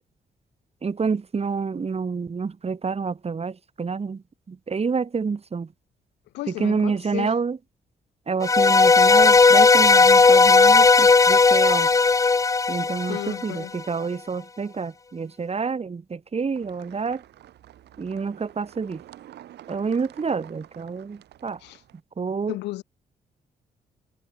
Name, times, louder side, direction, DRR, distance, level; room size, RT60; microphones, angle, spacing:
voice 1, 0.8-4.2 4.5-5.7 6.5-7.6 8.3-11.9 12.7-17.2 18.0-19.0 19.7-21.6 22.2-22.5, right 5 dB, 35° right, 1.3 m, -28 dB
voice 2, 6.3-7.4 13.1-13.8 21.6-21.8 22.5-22.8, left 18 dB, 85° left, 0.6 m, -33 dB
sound 1, 8.4-13.6, left 4 dB, 20° left, 0.4 m, -16 dB
sound 2, 16.5-22.0, right 12 dB, 75° right, 1.9 m, -48 dB
supercardioid pair, 55°, 17 cm